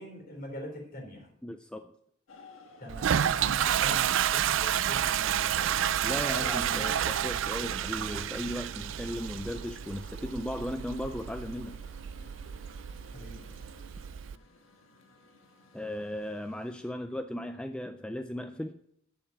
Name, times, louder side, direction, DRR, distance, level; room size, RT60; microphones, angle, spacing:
voice 1, 0.0-1.3 2.8-5.8 6.4-6.9 13.1-13.4, left 1 dB, 45° left, 3.6 m, -43 dB
voice 2, 1.4-1.9 6.0-11.8 15.7-18.8, equal, 5° left, 0.3 m, -36 dB
sound 1, 2.3-16.9, left 3 dB, 90° left, 1.5 m, -55 dB
Toilet flush, 2.9-14.3, right 10 dB, 70° right, 0.4 m, -30 dB
9.6 x 7.1 x 8.2 m
head